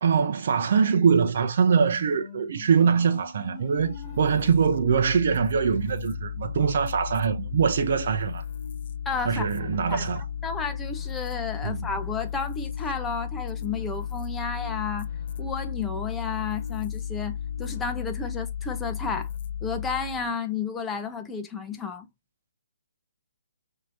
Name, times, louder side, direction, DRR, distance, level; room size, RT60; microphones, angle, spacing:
voice 1, 0.0-8.4 9.2-10.2 11.6-11.9, right 6 dB, 55° right, 0.7 m, -23 dB
sound 1, 1.8-17.7, left 2 dB, 30° left, 3.2 m, -46 dB
sound 2, 3.8-20.3, left 9 dB, 50° left, 0.5 m, -34 dB
voice 2, 9.0-10.1 10.4-15.1 15.4-19.3 19.6-22.1, left 5 dB, 10° left, 0.9 m, -32 dB
5.8 x 2.9 x 2.7 m
hypercardioid pair, 145°, 0 cm